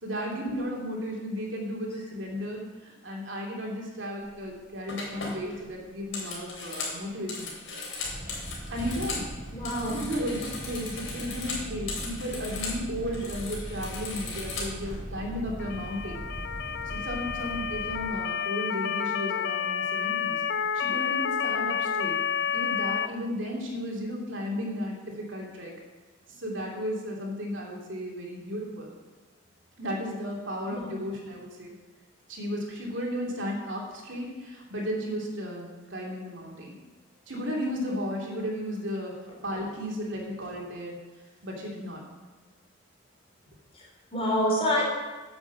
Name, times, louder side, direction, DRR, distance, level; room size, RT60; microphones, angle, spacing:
voice 1, 0.0-7.5 8.7-9.2 9.9-16.3 16.8-20.4 20.7-22.2 22.5-25.7 26.3-28.9 29.8-31.7 32.3-36.8 37.3-39.1 39.4-41.0 41.4-42.0, equal, 70° right, -1 dB, 2.7 m, -34 dB
sound 1, 4.3-4.5 4.9-9.3 9.6-12.8 13.1-15.0, left 3 dB, 85° left, 3.5 m, -37 dB
sound 2, 8.0-18.1, right 1 dB, 40° right, 1.5 m, -39 dB
voice 2, 9.5-10.0 30.7-31.1 39.6-39.7 43.7-44.9, left 1 dB, 30° left, -3 dB, 3.2 m, -28 dB
Motor vehicle (road) / Siren, 15.6-23.1, left 7 dB, 55° left, 0.4 m, -30 dB
10.0 x 7.0 x 7.2 m, 1.3 s
head